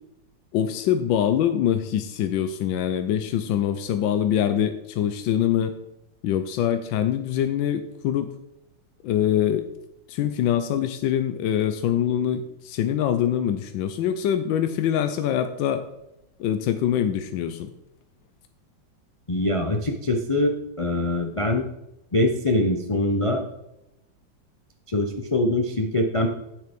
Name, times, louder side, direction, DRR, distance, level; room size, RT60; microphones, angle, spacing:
voice 1, 0.5-5.8 6.2-8.3 9.0-9.6 10.1-15.8 16.4-17.7, left 10 dB, 85° left, 9 dB, 1.4 m, -24 dB
voice 2, 19.3-21.6 22.1-23.4 24.9-26.3, left 1 dB, 60° left, 3 dB, 0.3 m, -23 dB
9.4 x 7.4 x 5.2 m, 0.88 s
omnidirectional pair, 2.0 m